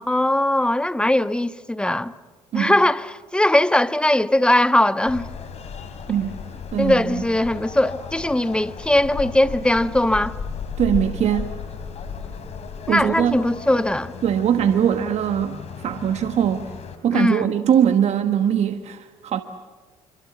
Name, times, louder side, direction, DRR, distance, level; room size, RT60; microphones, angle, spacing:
voice 1, 0.1-2.1 2.5-5.3 6.8-10.3 12.9-14.1 17.1-17.5, left 1 dB, 5° left, 1.2 m, -20 dB
sound 1, 5.0-17.0, left 6 dB, 55° left, 4.2 m, -35 dB
voice 2, 6.7-7.2 10.8-11.6 12.9-13.5 14.2-16.7 17.0-19.4, right 9 dB, 60° right, 1.5 m, -21 dB
26.5 x 25.0 x 7.3 m
supercardioid pair, 60°, 13 cm